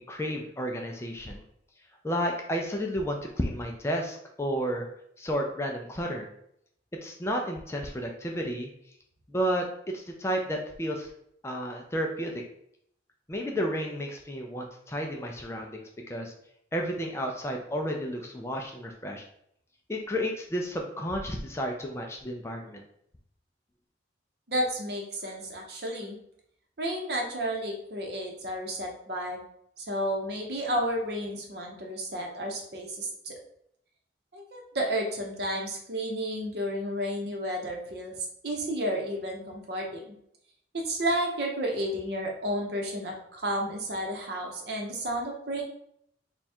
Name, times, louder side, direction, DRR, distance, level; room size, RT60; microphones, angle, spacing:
voice 1, 0.1-1.4 2.0-4.9 5.2-6.3 7.0-8.7 9.3-11.1 11.4-12.3 13.3-16.3 16.7-19.2 19.9-22.8, equal, 15° left, 1 dB, 0.3 m, -32 dB
voice 2, 24.5-26.2 26.8-29.4 29.8-33.3 34.3-38.2 38.4-40.1 40.8-45.6, equal, 60° right, 0 dB, 0.8 m, -32 dB
3.4 x 2.3 x 4.2 m, 0.72 s
head